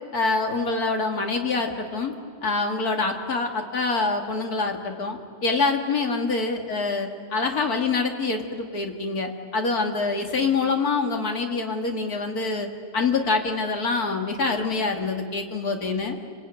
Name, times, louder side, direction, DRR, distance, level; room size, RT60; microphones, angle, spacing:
voice 1, 0.1-2.1 2.4-12.7 12.9-16.2, left 3 dB, 50° left, 3 dB, 2.6 m, -25 dB
29.5 x 20.0 x 9.1 m, 2.2 s
omnidirectional pair, 2.1 m